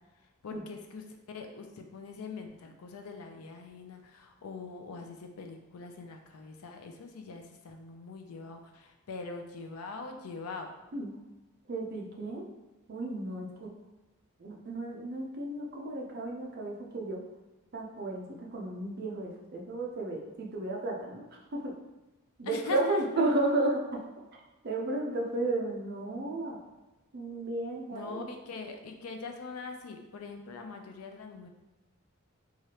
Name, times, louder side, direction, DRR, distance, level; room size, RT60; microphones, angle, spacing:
voice 1, 0.4-10.7 22.4-23.0 27.9-31.5, left 4 dB, 75° left, 4 dB, 0.4 m, -42 dB
voice 2, 11.7-12.4 12.9-13.7 14.4-17.2 17.7-21.3 21.5-21.7 22.4-24.0 24.6-26.6 27.1-28.3, right 2 dB, 45° right, -1 dB, 0.5 m, -33 dB
3.1 x 2.4 x 2.8 m, 1.1 s
head